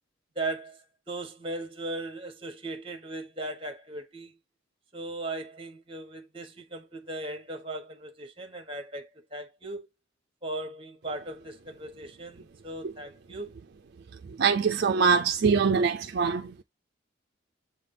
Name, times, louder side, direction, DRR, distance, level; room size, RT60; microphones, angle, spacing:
voice 1, 0.3-4.4 4.9-9.9 10.4-13.6, right 2 dB, 25° right, 1.2 m, -38 dB
voice 2, 14.4-16.6, right 5 dB, 55° right, 0.4 m, -23 dB
7.5 x 3.3 x 3.7 m
head